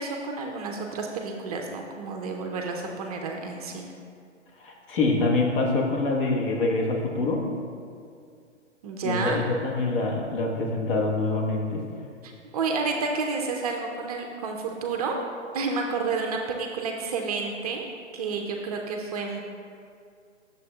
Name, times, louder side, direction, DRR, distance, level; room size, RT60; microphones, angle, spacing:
voice 1, 0.0-3.9 8.8-9.4 12.2-15.1 15.5-17.9 18.1-19.4, right 4 dB, 30° right, 2 dB, 0.5 m, -30 dB
voice 2, 4.6-7.4 9.0-11.8, left 3 dB, 50° left, 0 dB, 1.3 m, -25 dB
11.0 x 7.0 x 2.3 m, 2.3 s
figure-of-eight pair, 125°, 36 cm